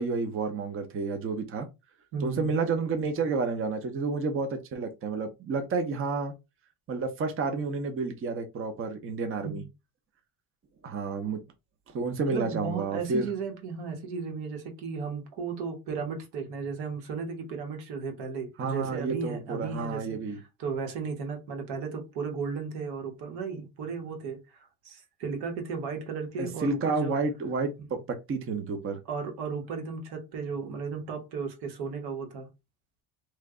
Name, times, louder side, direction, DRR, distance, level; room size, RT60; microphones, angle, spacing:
voice 1, 0.0-1.7 2.2-6.3 6.9-9.6 10.8-11.4 11.9-13.3 18.6-20.4 26.4-29.0, right 4 dB, 35° right, 0.7 m, -30 dB
voice 2, 2.1-2.5 9.4-9.7 12.3-20.2 20.6-24.4 24.8-27.1 29.1-32.5, right 5 dB, 85° right, 1.3 m, -35 dB
3.1 x 2.3 x 3.7 m
cardioid pair, 120°, 38 cm